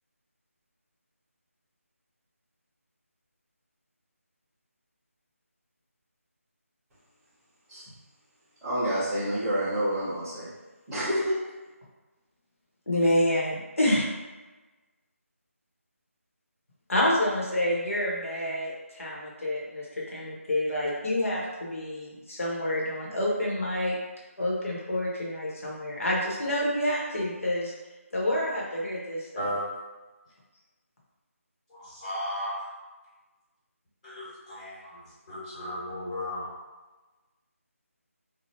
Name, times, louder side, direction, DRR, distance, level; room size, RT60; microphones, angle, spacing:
voice 1, 8.6-10.5 10.9-11.4, equal, 5° right, -15 dB, 0.7 m, -28 dB
voice 2, 12.9-14.0 16.9-24.0 24.4-27.7 28.1-29.3, left 1 dB, 65° left, -4 dB, 1.1 m, -28 dB
voice 3, 29.3-29.7 31.7-32.6 34.0-36.5, equal, 25° left, -12 dB, 1.2 m, -35 dB
3.1 x 2.3 x 2.8 m, 1.2 s
figure-of-eight pair, 170°, 8 cm